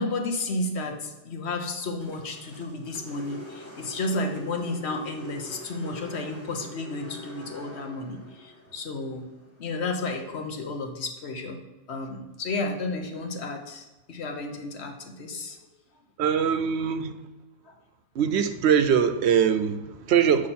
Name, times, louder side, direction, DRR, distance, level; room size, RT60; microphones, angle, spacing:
voice 1, 0.0-9.3 9.6-11.6 11.9-15.6 17.7-17.8, left 2 dB, 65° left, 4 dB, 1.1 m, -32 dB
sound 1, 2.0-10.3, left 1 dB, 15° left, 0.9 m, -45 dB
voice 2, 16.2-17.1 18.1-20.5, right 8 dB, 70° right, 9 dB, 0.8 m, -22 dB
7.4 x 4.8 x 4.2 m, 1.1 s
omnidirectional pair, 1.2 m